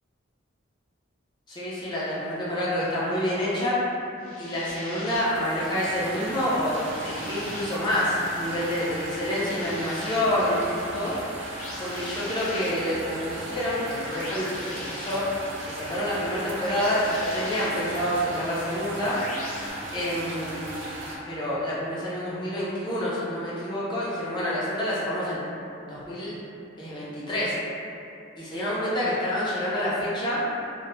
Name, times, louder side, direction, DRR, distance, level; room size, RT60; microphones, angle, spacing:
voice 1, 1.5-3.8 4.4-6.8 7.0-11.1 11.8-15.2 15.7-19.2 19.9-20.7 21.3-25.4 25.9-26.4 26.8-27.5 28.4-30.4, left 1 dB, 20° left, -8 dB, 0.4 m, -28 dB
sound 1, 4.2-5.2 6.7-7.7 9.2-10.2 11.6-12.7 14.1-15.2 16.6-17.7 19.1-19.7, left 1 dB, 80° left, 0.5 m, -40 dB
sound 2, 5.1-21.2, right 1 dB, 60° right, 0.4 m, -37 dB
2.1 x 2.0 x 3.0 m, 2.7 s
head